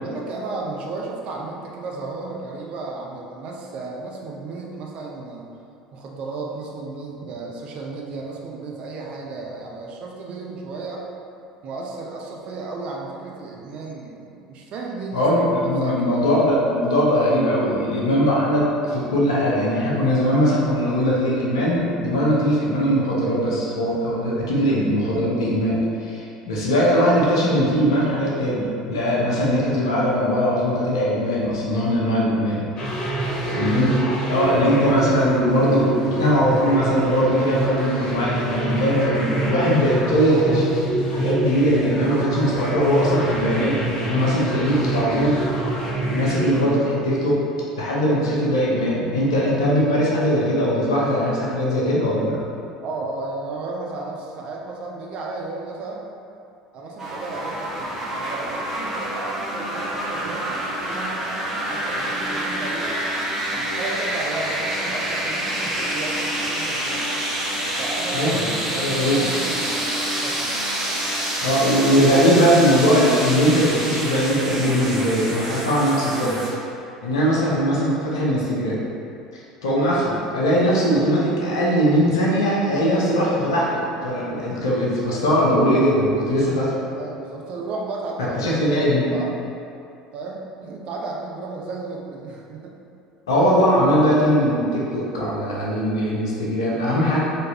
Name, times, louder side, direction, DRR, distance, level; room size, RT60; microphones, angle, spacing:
voice 1, 0.0-5.5 5.9-11.1 11.6-15.3 15.6-16.3 33.1-33.6 52.8-56.0 56.7-63.0 63.5-67.1 67.8-70.5 87.0-89.3 90.1-92.7, right 3 dB, 45° right, -1 dB, 0.5 m, -33 dB
voice 2, 15.1-32.7 33.5-33.9 34.2-45.4 46.1-47.4 47.8-52.4 68.1-68.5 68.8-69.2 71.4-76.4 77.0-78.8 79.6-86.7 88.4-89.1 93.3-97.2, equal, 70° left, -6 dB, 0.9 m, -20 dB
sound 1, 32.8-46.6, right 2 dB, 30° left, 1.0 m, -26 dB
sound 2, 57.0-76.5, right 1 dB, 20° right, 1.2 m, -27 dB
4.1 x 3.2 x 2.8 m, 2.7 s
figure-of-eight pair, 70°, 3 cm